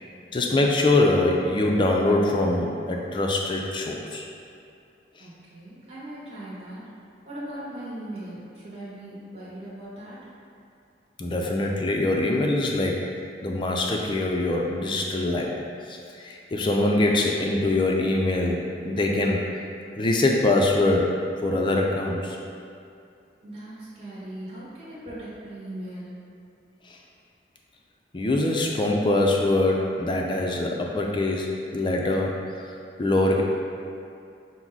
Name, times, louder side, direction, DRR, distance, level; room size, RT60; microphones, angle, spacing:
voice 1, 0.3-4.2 11.2-13.1 13.4-15.6 15.9-19.4 20.0-22.4 26.9-27.0 28.1-32.4 33.0-33.4, left 2 dB, 25° left, 0 dB, 0.4 m, -23 dB
voice 2, 5.2-6.8 7.2-10.2 23.4-26.2, right 1 dB, 35° right, -10 dB, 1.0 m, -39 dB
5.9 x 2.0 x 3.8 m, 2.5 s
head